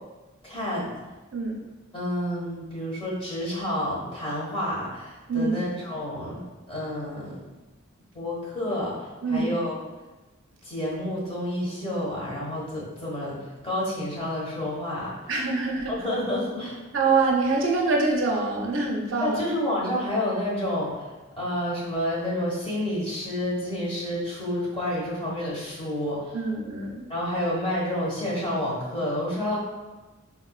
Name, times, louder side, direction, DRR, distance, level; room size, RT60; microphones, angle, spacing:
voice 1, 0.4-0.9 1.9-7.4 8.1-9.8 10.6-13.4 13.6-15.1 15.9-16.8 19.2-21.1 21.4-26.4 27.1-29.6, left 1 dB, 30° left, -7 dB, 1.0 m, -29 dB
voice 2, 9.2-9.6 15.3-15.9 16.9-19.4 26.3-27.0, right 3 dB, 65° right, -1 dB, 0.5 m, -25 dB
4.1 x 2.2 x 2.3 m, 1.2 s
head